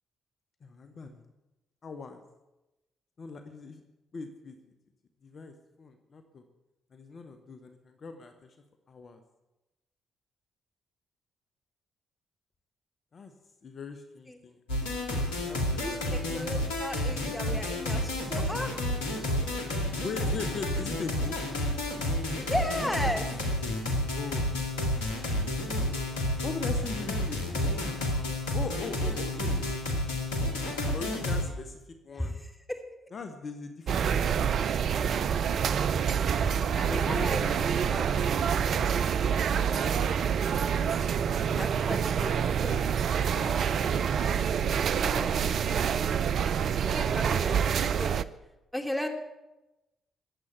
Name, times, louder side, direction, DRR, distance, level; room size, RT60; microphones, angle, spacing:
voice 1, 0.6-1.2 1.8-2.2 3.2-3.8 4.1-4.5 5.2-6.4 6.9-8.6 8.9-9.2 13.1-13.3 13.6-14.6 15.0-16.4 20.0-21.4 24.1-24.6 26.4-30.0 30.9-32.3 33.1-34.7 36.3-37.6 43.3-46.0, left 4 dB, 45° left, 7 dB, 1.6 m, -41 dB
sound 1, 14.7-31.5, left 1 dB, 85° left, 2.2 m, -30 dB
voice 2, 15.8-18.7 22.5-23.3 32.2-32.3 32.7-32.8 36.5-38.3 38.6-39.3 39.6-40.2 40.7-42.4 42.6-42.9 44.9-45.6 46.8-48.2 48.7-49.1, equal, ahead, 3 dB, 3.1 m, -36 dB
sound 2, 33.9-48.2, right 7 dB, 60° right, 0.6 m, -27 dB
21.0 x 8.4 x 8.1 m, 0.99 s
hypercardioid pair, 45°, 0 cm